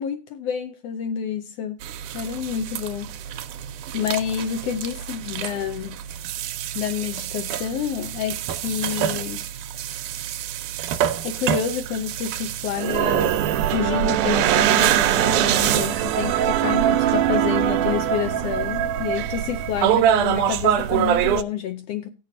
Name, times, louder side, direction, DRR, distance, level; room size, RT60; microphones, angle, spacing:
voice 1, 0.0-1.8 2.1-3.1 3.9-6.0 6.7-9.4 11.2-13.4 13.7-22.1, left 8 dB, 80° left, 1.5 m, -28 dB
sound 1, 1.8-21.4, right 10 dB, 90° right, 2.1 m, -24 dB
18.5 x 6.8 x 2.6 m
omnidirectional pair, 3.5 m